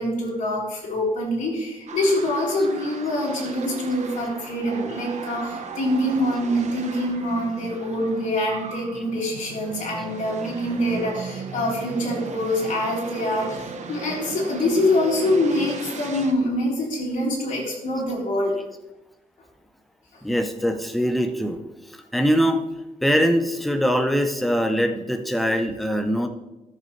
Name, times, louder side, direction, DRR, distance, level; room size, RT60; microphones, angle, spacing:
voice 1, 0.0-18.6 20.1-20.2, left 1 dB, 60° left, -5 dB, 3.7 m, -25 dB
sound 1, 1.9-16.3, right 4 dB, 55° right, 1.0 m, -36 dB
voice 2, 20.2-21.6 22.1-22.6 23.0-26.3, equal, ahead, 5 dB, 0.7 m, -22 dB
13.5 x 6.9 x 3.2 m, 0.98 s
wide cardioid pair, 150°, 14 cm